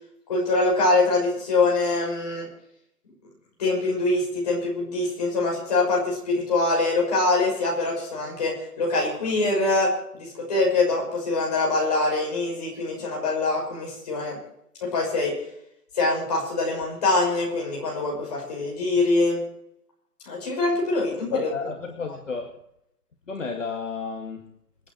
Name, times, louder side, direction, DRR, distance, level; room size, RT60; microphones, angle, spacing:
voice 1, 0.3-2.5 3.6-14.4 14.8-15.4 15.9-19.4 20.3-21.5, left 3 dB, 25° left, -2 dB, 5.9 m, -24 dB
voice 2, 21.3-22.5 23.3-24.5, left 5 dB, 50° left, 3 dB, 2.2 m, -32 dB
27.5 x 9.5 x 4.5 m, 0.75 s
hypercardioid pair, 175°, 47 cm